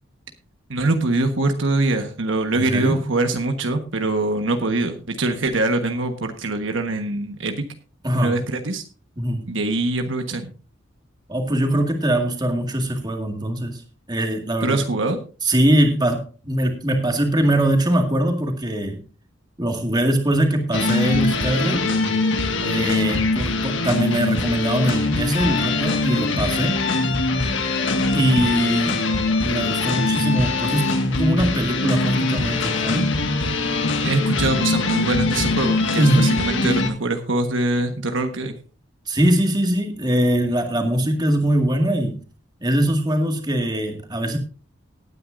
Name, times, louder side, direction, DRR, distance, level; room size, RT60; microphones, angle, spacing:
voice 1, 0.7-7.6 8.1-8.8 9.5-10.5 14.6-15.2 34.0-38.5, right 2 dB, 65° right, 6 dB, 1.3 m, -23 dB
voice 2, 2.5-3.0 8.0-8.4 9.2-9.5 11.3-13.8 14.1-14.9 15.4-19.0 19.6-21.9 22.6-26.8 28.1-29.0 29.4-33.1 36.0-36.2 39.1-42.2 42.6-44.4, right 1 dB, 20° right, 4 dB, 2.0 m, -22 dB
sound 1, 20.7-36.9, left 3 dB, 65° left, 1.8 m, -22 dB
18.5 x 9.5 x 2.6 m, 0.35 s
head